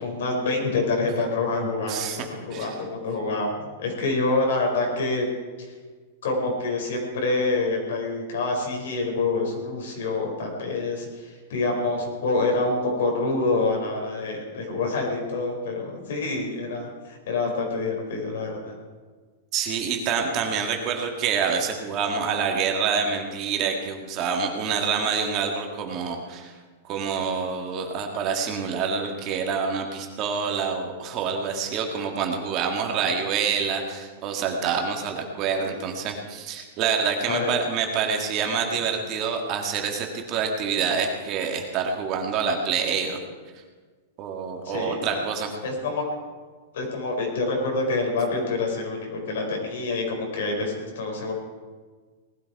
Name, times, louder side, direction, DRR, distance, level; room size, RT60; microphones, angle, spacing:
voice 1, 0.0-5.3 5.6-5.7 6.2-18.7 35.6-35.7 37.3-37.5 44.6-45.2 45.6-46.0 46.7-51.3, left 3 dB, 70° left, 1 dB, 4.9 m, -27 dB
voice 2, 1.9-2.3 2.5-2.7 19.5-26.5 26.9-43.2 44.2-45.5, right 6 dB, 30° right, 3 dB, 1.9 m, -27 dB
18.5 x 12.5 x 4.8 m, 1.4 s
supercardioid pair, 165°, 0 cm